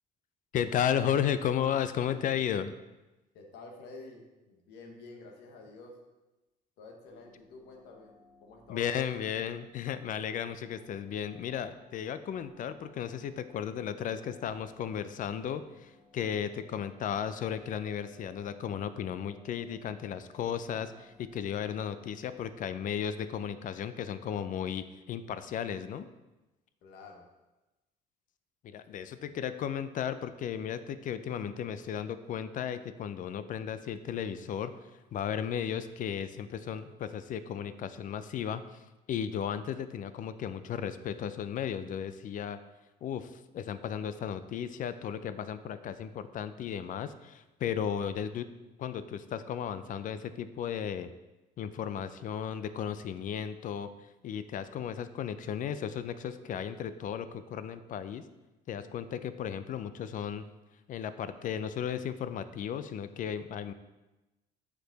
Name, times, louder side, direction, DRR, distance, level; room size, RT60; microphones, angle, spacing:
voice 1, 0.5-2.7 8.7-26.1 28.6-38.8 39.1-42.6 43.0-48.5 48.8-51.1 51.6-53.9 54.2-58.2 58.7-60.4 60.9-63.7, left 8 dB, 50° left, 12 dB, 0.4 m, -34 dB
voice 2, 3.3-6.0 6.8-8.1 8.4-9.1 16.7-16.9 26.8-27.3 28.9-29.3, left 3 dB, 80° left, 2 dB, 1.3 m, -49 dB
sound 1, 7.1-22.9, left 2 dB, 5° right, 2.2 m, -62 dB
6.7 x 4.9 x 4.0 m, 1.1 s
cardioid pair, 110°, 17 cm